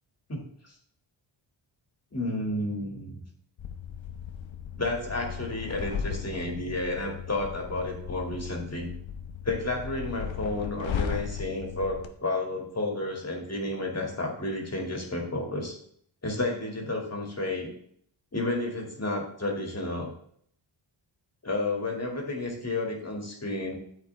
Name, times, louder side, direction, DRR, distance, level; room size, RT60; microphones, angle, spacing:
voice 1, 0.3-0.7 2.1-3.2 4.7-8.9 9.4-15.8 16.2-17.7 18.3-20.1 21.4-23.7, left 2 dB, 30° left, 1 dB, 2.4 m, -31 dB
sound 1, 3.6-12.1, left 7 dB, 70° left, 1.0 m, -36 dB
9.5 x 7.9 x 3.5 m, 0.63 s
cardioid pair, 75°, 47 cm